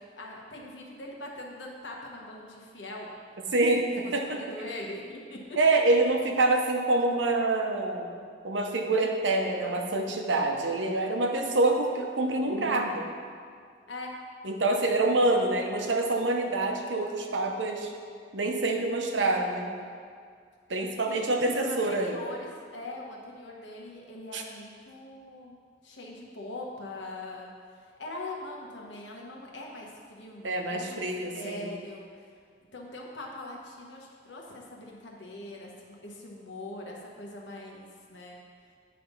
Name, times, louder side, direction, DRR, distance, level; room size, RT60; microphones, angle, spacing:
voice 1, 0.2-3.1 4.0-5.6 13.9-14.1 21.0-25.6 25.8-27.5 28.0-32.1 32.7-38.4, left 2 dB, 90° left, -1 dB, 1.2 m, -42 dB
voice 2, 3.5-4.4 5.6-8.1 8.4-13.0 14.4-17.9 18.3-19.7 20.7-22.2 24.3-24.4 30.4-31.7, right 2 dB, 85° right, 2 dB, 0.8 m, -26 dB
9.4 x 3.4 x 5.4 m, 2.1 s
head